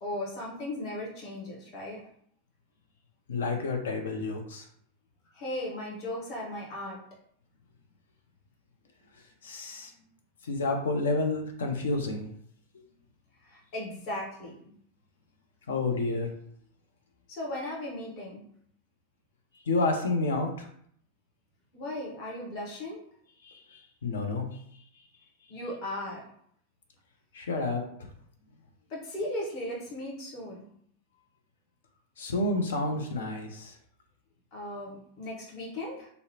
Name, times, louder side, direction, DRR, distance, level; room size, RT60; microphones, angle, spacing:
voice 1, 0.0-2.0 5.3-7.0 13.4-14.5 17.3-18.4 21.7-23.0 25.5-26.2 28.9-30.6 34.5-36.1, left 1 dB, 40° left, -4 dB, 0.9 m, -37 dB
voice 2, 3.3-4.6 9.4-9.9 10.4-12.3 15.7-16.3 19.7-20.7 23.4-24.5 27.3-27.8 32.2-33.7, left 2 dB, 65° left, 3 dB, 0.5 m, -29 dB
2.7 x 2.1 x 2.7 m, 0.65 s
figure-of-eight pair, 90°, 0 cm